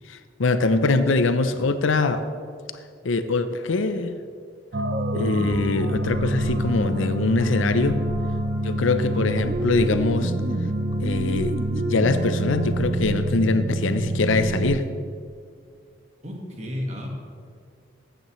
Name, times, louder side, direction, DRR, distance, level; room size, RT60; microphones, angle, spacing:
voice 1, 0.1-2.2 3.0-4.2 5.1-8.0 8.6-10.3 11.0-11.6 11.9-14.9, left 3 dB, 90° left, 10 dB, 0.6 m, -23 dB
sound 1, 4.7-14.8, right 1 dB, 55° right, 0.6 m, -26 dB
sound 2, 6.0-12.8, right 2 dB, 10° left, 1.8 m, -46 dB
voice 2, 8.9-9.3 16.2-17.1, left 1 dB, 35° right, 0 dB, 1.5 m, -34 dB
14.5 x 9.1 x 3.1 m, 2.2 s
head